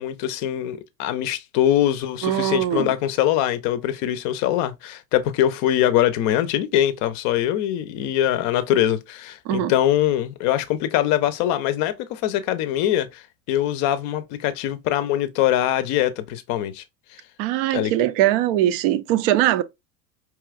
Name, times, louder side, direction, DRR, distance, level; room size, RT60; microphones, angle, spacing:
voice 1, 0.0-13.2 13.5-16.8 17.1-17.2 17.7-17.9, left 12 dB, 40° left, 0.6 m, -23 dB
voice 2, 2.2-2.9 9.5-9.7 17.4-19.6, right 13 dB, 40° right, 0.4 m, -21 dB
4.7 x 2.9 x 2.4 m
figure-of-eight pair, 80°, 48 cm